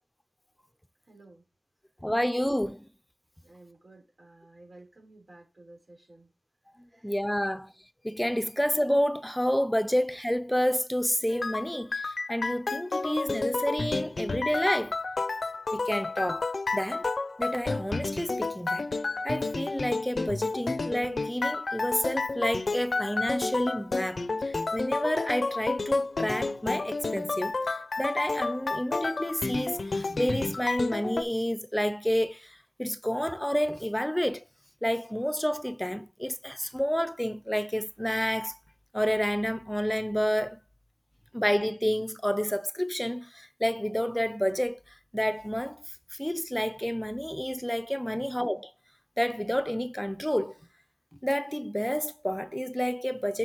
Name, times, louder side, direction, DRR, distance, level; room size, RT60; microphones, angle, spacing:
voice 1, 1.0-1.4 3.4-6.3 6.9-7.2 48.1-48.4, right 2 dB, 75° right, 4.2 m, -53 dB
voice 2, 2.0-2.9 7.0-7.7 8.0-15.0 15.7-17.1 17.4-18.9 19.2-34.4 34.8-38.6 38.9-40.6 41.3-48.6 49.2-50.6 51.2-53.4, equal, 10° left, 0.5 m, -29 dB
sound 1, 11.4-31.2, left 3 dB, 90° left, 0.5 m, -31 dB
8.0 x 6.1 x 3.0 m
wide cardioid pair, 45°, 0 cm